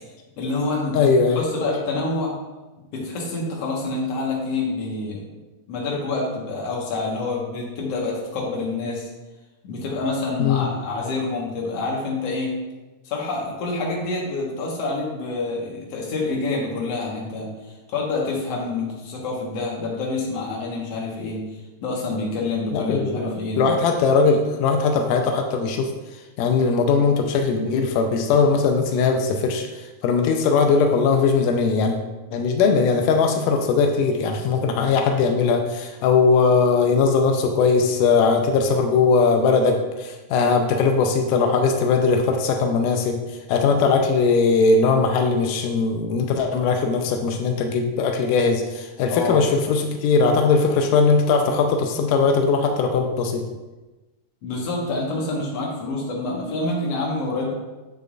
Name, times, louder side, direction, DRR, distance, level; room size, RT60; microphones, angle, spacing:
voice 1, 0.4-2.3 2.9-5.3 5.7-9.1 9.6-12.5 13.0-17.5 17.9-21.4 21.8-23.7 49.1-49.4 54.4-57.5, left 3 dB, 60° left, -3 dB, 2.3 m, -27 dB
voice 2, 0.9-1.4 10.4-10.7 22.7-25.9 26.4-31.9 32.3-53.4, left 4 dB, 90° left, 4 dB, 2.2 m, -20 dB
8.0 x 6.8 x 2.5 m, 1.1 s
omnidirectional pair, 3.7 m